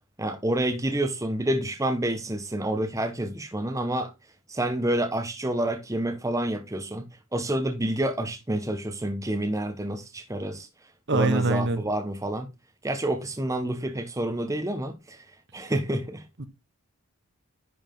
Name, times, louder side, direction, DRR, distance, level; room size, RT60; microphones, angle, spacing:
voice 1, 0.2-4.1 4.5-10.7 11.1-12.5 12.8-15.2 15.5-16.2, right 1 dB, 15° right, 0.9 m, -28 dB
voice 2, 11.1-11.8 16.4-16.5, right 2 dB, 50° right, 1.1 m, -24 dB
10.5 x 4.8 x 3.8 m
head